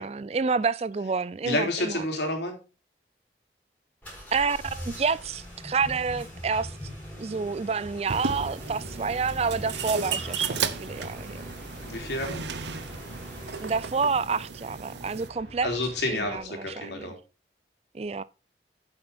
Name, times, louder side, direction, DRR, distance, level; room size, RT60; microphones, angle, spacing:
voice 1, 0.0-2.0 4.3-6.7 7.2-11.5 13.6-15.7 16.1-17.1 17.9-18.2, right 5 dB, 35° right, 0.4 m, -29 dB
voice 2, 1.4-2.6 11.9-12.4 15.6-17.2, left 1 dB, 80° left, 3.5 m, -29 dB
sound 1, 4.0-14.2, equal, 10° left, 4.2 m, -42 dB
sound 2, 8.1-15.3, right 5 dB, 80° right, 0.9 m, -35 dB
sound 3, 10.5-16.4, right 1 dB, 65° right, 4.1 m, -48 dB
9.0 x 7.6 x 4.2 m
head